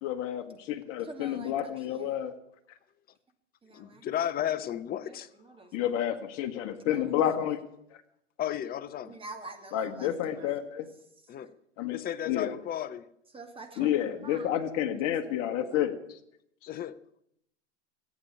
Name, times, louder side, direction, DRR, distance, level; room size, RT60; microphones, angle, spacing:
voice 1, 0.0-2.3 5.7-7.6 9.7-10.9 11.8-12.0 12.3-12.5 13.8-15.9, left 11 dB, 40° left, 1.4 m, -30 dB
voice 2, 1.0-2.1 3.6-4.0 5.5-5.7 6.9-7.1 9.1-10.5 13.3-14.5 14.9-15.7, right 3 dB, 15° right, 2.2 m, -46 dB
voice 3, 3.7-5.3 8.4-9.2 11.3-11.5 11.9-13.1 16.7-17.0, left 10 dB, 25° left, 0.8 m, -33 dB
15.5 x 8.6 x 9.9 m
hypercardioid pair, 105°, 36 cm